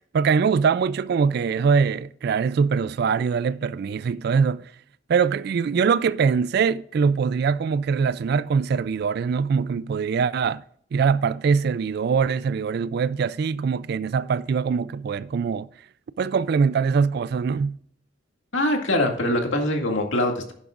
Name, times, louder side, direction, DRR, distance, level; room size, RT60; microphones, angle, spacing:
voice 1, 0.1-4.7 5.1-10.6 10.9-15.7 16.2-17.8, right 5 dB, 55° right, 0.3 m, -22 dB
voice 2, 18.5-20.5, left 1 dB, 80° left, 2.2 m, -23 dB
11.0 x 11.0 x 2.4 m
head